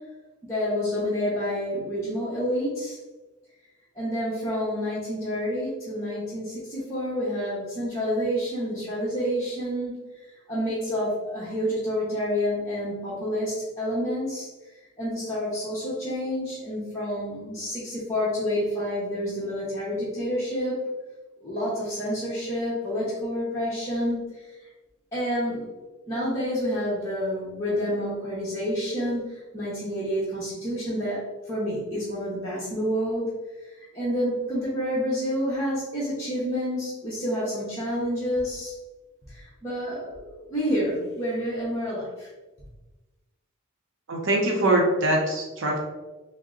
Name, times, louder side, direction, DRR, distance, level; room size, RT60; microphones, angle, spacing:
voice 1, 0.4-3.0 3.9-14.5 15.0-20.8 21.4-24.7 25.1-25.7 26.1-33.2 33.6-38.7 39.3-42.3, equal, 15° left, -11 dB, 0.9 m, -29 dB
voice 2, 44.1-45.8, right 1 dB, 60° right, -1 dB, 0.7 m, -23 dB
3.7 x 2.0 x 3.7 m, 1.2 s
head